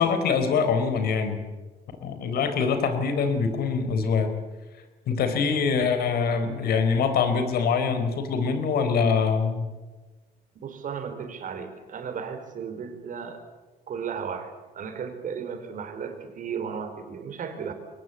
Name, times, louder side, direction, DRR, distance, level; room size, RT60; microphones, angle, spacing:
voice 1, 0.0-1.4 2.0-4.3 5.1-9.7, left 5 dB, 65° left, 8 dB, 4.2 m, -24 dB
voice 2, 10.5-13.4 13.9-17.7, right 6 dB, 50° right, 7 dB, 4.5 m, -35 dB
22.5 x 20.0 x 8.4 m, 1.2 s
cardioid pair, 110°, 17 cm